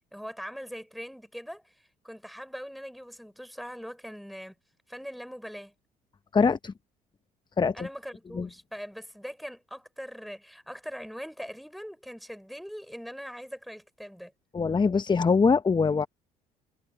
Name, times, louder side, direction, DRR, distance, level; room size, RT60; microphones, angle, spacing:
voice 1, 0.1-4.5 4.9-5.7 7.7-14.3, equal, ahead, 5.5 m, -41 dB
voice 2, 6.3-6.7 7.6-7.9 8.3-8.5 14.5-16.1, left 5 dB, 20° left, 0.9 m, -23 dB
hypercardioid pair, 60°, 20 cm